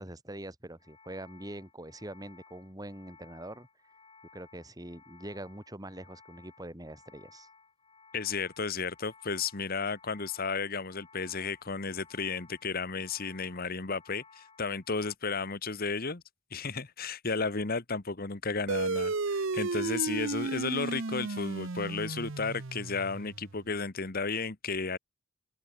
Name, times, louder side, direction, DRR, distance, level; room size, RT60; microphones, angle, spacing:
voice 1, 0.0-3.7 4.3-7.5, right 1 dB, 15° right, 2.9 m, -44 dB
sound 1, 0.7-15.2, left 5 dB, 25° left, 4.8 m, -58 dB
voice 2, 8.1-16.2 16.5-25.0, left 4 dB, 40° left, 1.2 m, -33 dB
sound 2, 18.7-23.6, right 3 dB, 60° right, 0.9 m, -33 dB
open air
head